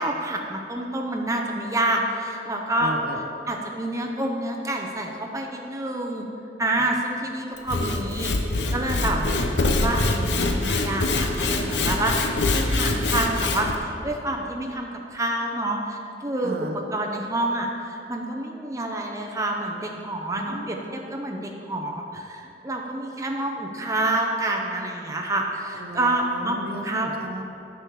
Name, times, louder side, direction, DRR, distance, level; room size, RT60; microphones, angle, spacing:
voice 1, 0.0-3.0 3.5-6.3 6.6-9.2 9.6-16.5 16.9-27.1, right 1 dB, 20° right, 1 dB, 0.6 m, -28 dB
voice 2, 2.8-3.5 9.1-9.2 16.4-16.8 20.3-20.7 25.7-27.4, right 1 dB, 60° right, 4 dB, 0.8 m, -34 dB
Sawing / Wood, 7.6-13.8, left 2 dB, 80° left, 0.7 m, -24 dB
10.0 x 6.3 x 4.6 m, 2.8 s
head